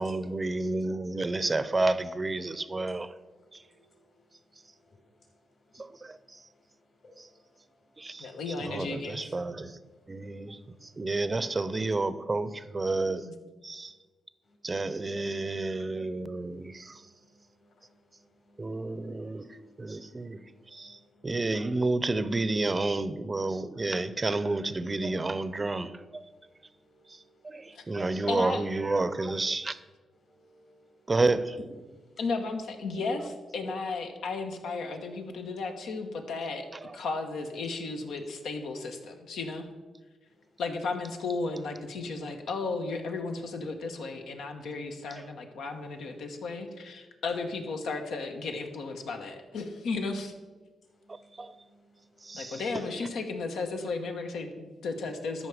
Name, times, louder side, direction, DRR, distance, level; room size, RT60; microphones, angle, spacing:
voice 1, 0.0-3.1 5.8-6.2 7.2-7.3 8.0-8.3 8.6-9.7 10.1-13.3 13.6-13.9 14.6-17.0 18.6-20.4 20.7-26.2 27.4-29.8 31.1-31.6 36.8-37.0 51.4-51.5 52.2-52.6, right 2 dB, 30° right, 0.6 m, -30 dB
voice 2, 8.2-9.3 13.2-13.3 27.7-27.9 28.3-28.6 32.2-36.7 36.9-39.7 40.6-50.3 52.3-55.5, left 3 dB, 85° left, 1.2 m, -34 dB
voice 3, 10.7-11.1 16.0-16.2 16.5-17.4 17.8-17.9 18.6-19.1 19.8-21.3 26.8-27.0 27.7-28.0 30.2-31.1 51.0-52.3, equal, 55° left, 3.5 m, -64 dB
13.0 x 5.4 x 4.9 m
cardioid pair, 80°, 0 cm